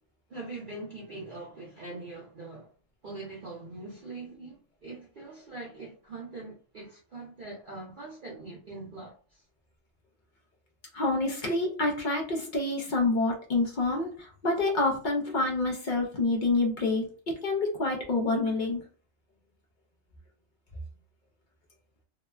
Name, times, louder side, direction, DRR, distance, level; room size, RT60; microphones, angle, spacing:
voice 1, 0.3-2.7 3.0-9.4, right 3 dB, 50° right, 0.7 m, -42 dB
voice 2, 10.9-18.8, left 2 dB, 55° left, 0.5 m, -27 dB
2.9 x 2.1 x 2.3 m
omnidirectional pair, 1.4 m